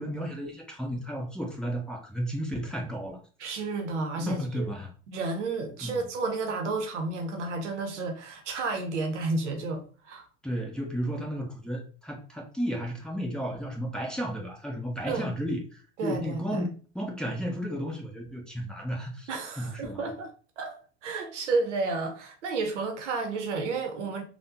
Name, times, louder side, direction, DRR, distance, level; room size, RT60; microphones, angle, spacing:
voice 1, 0.0-3.2 4.2-4.9 5.8-6.0 10.4-19.3 19.6-20.0, equal, ahead, 0.9 m, -33 dB
voice 2, 3.4-4.6 5.1-10.3 15.1-15.3 16.0-16.6 19.3-20.3 20.6-20.8 21.0-24.2, right 3 dB, 75° right, 0.8 m, -31 dB
3.5 x 2.3 x 2.7 m
hypercardioid pair, 80°, 36 cm